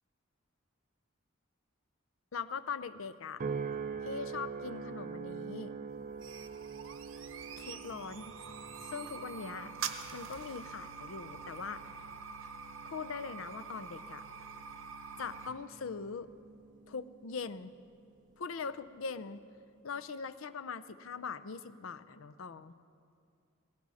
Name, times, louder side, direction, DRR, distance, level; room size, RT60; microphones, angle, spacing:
voice 1, 2.3-3.4 4.0-5.7 7.6-8.4 8.8-9.7 10.1-11.8 12.8-14.3 15.2-16.3 16.9-17.7 18.4-19.4 19.8-22.8, left 5 dB, 80° left, 15 dB, 0.5 m, -41 dB
sound 1, 3.4-17.9 18.4-18.8, right 5 dB, 40° right, 0.4 m, -45 dB
sound 2, 5.9-15.5, right 6 dB, 75° right, 0.9 m, -45 dB
18.0 x 16.0 x 4.1 m, 2.4 s
head